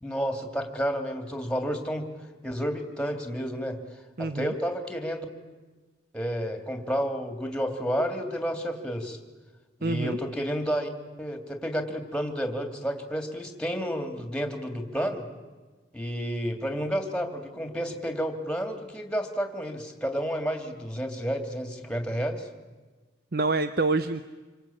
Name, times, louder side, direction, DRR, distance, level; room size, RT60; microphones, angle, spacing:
voice 1, 0.0-2.0 2.4-3.8 4.2-5.3 6.1-9.2 9.8-10.9 11.2-15.2 15.9-22.5, equal, 5° left, 5 dB, 2.8 m, -30 dB
voice 2, 4.2-4.5 9.8-10.2 23.3-24.2, right 3 dB, 55° right, 11 dB, 0.9 m, -26 dB
27.0 x 25.0 x 8.7 m, 1.3 s
head